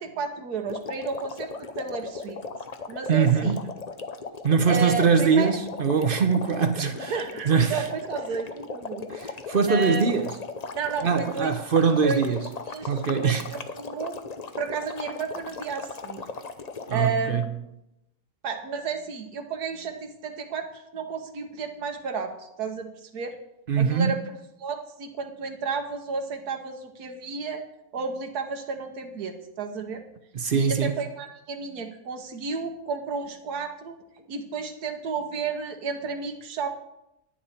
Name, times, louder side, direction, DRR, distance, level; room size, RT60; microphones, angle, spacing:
voice 1, 0.0-2.4 2.9-3.6 4.7-5.5 7.0-9.1 9.7-10.0 10.7-11.6 12.0-12.2 12.7-14.2 14.6-16.2 16.9-17.5 18.4-23.4 23.8-27.6 27.9-30.0 30.5-34.0 34.3-36.7, right 5 dB, 80° right, 1.6 m, -32 dB
sound 1, 0.7-17.1, left 4 dB, 50° left, 0.4 m, -37 dB
voice 2, 3.1-3.6 4.4-7.9 9.1-10.3 11.0-12.4 12.8-13.4 16.9-17.4 23.7-24.2 30.3-30.9, right 6 dB, 50° right, 0.7 m, -22 dB
10.0 x 9.9 x 4.3 m
omnidirectional pair, 1.6 m